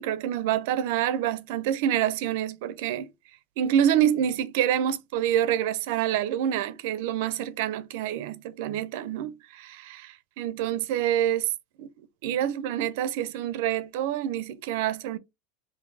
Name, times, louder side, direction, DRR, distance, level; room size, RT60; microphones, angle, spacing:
voice 1, 0.0-3.1 3.6-11.5 11.8-11.9 12.2-15.2, right 10 dB, 70° right, 0.5 m, -27 dB
3.8 x 2.6 x 3.2 m
supercardioid pair, 145°, 0 cm